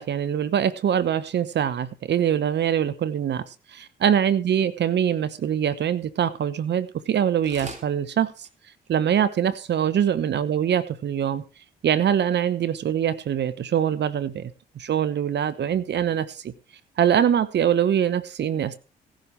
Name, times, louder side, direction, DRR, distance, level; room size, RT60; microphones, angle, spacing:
voice 1, 0.0-3.4 3.8-8.5 8.9-11.4 11.8-16.5 17.0-18.8, right 9 dB, 55° right, 0.9 m, -23 dB
sound 1, 7.0-7.2 7.4-7.9 8.4-8.5 8.8-8.9 9.1-9.2 9.8-9.9, right 3 dB, 35° right, 3.3 m, -40 dB
17.0 x 11.5 x 3.3 m
hypercardioid pair, 50°, 21 cm